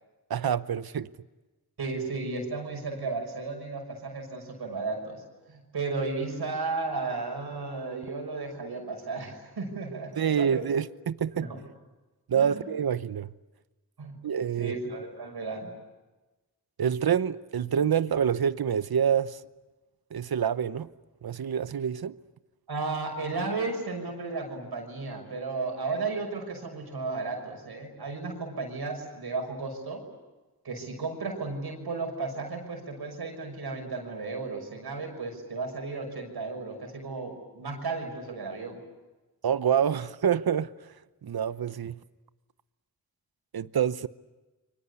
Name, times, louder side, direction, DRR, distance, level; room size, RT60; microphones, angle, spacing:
voice 1, 0.3-1.1 10.2-11.5 12.3-13.3 14.2-14.7 16.8-19.4 20.1-20.9 21.2-22.2 39.4-40.7 41.2-42.0 43.5-44.1, right 8 dB, 75° right, 0.9 m, -27 dB
voice 2, 1.8-5.2 5.5-10.6 11.3-11.6 12.3-12.6 14.0-14.2 14.6-15.7 22.7-30.0 30.6-38.8, right 3 dB, 90° right, 6.2 m, -34 dB
30.0 x 24.0 x 8.3 m
cardioid pair, 50°, 38 cm